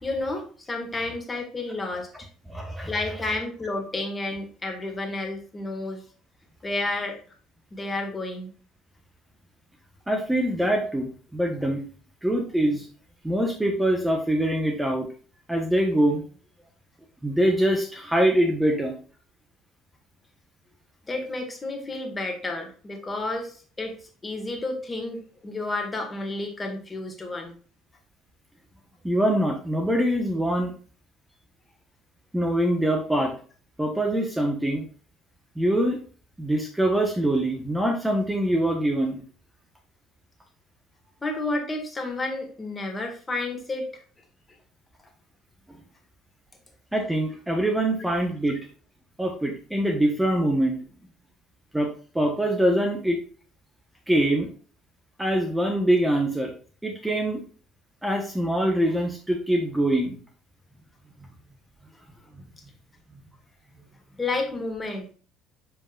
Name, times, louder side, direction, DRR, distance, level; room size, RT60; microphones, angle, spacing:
voice 1, 0.0-2.3 2.9-6.0 6.6-7.2 7.7-8.5 21.1-27.5 41.2-43.9 64.2-65.1, left 2 dB, 25° left, 3 dB, 1.9 m, -31 dB
voice 2, 2.5-2.9 10.1-11.8 12.2-12.9 13.2-15.1 15.5-16.2 17.2-18.9 29.0-30.7 32.3-33.3 33.8-34.8 35.6-36.0 36.4-39.2 46.9-48.6 49.2-50.8 51.7-53.2 54.1-54.5 55.2-56.5 56.8-57.4 58.0-60.2, right 1 dB, 10° right, 2 dB, 1.2 m, -24 dB
7.2 x 5.4 x 2.5 m, 0.41 s
hypercardioid pair, 65°, 0 cm